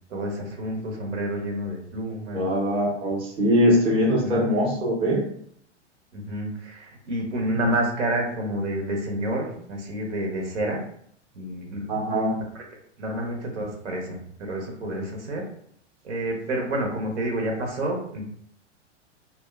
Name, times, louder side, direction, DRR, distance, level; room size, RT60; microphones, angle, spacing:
voice 1, 0.1-2.5 4.2-4.4 6.1-10.8 11.3-11.8 12.5-12.6 13.0-15.4 16.0-18.3, right 1 dB, 75° right, 0 dB, 0.9 m, -29 dB
voice 2, 2.3-5.2 7.6-7.7 11.9-12.3, equal, 15° right, -4 dB, 0.6 m, -22 dB
2.8 x 2.1 x 2.3 m, 0.66 s
hypercardioid pair, 110°, 36 cm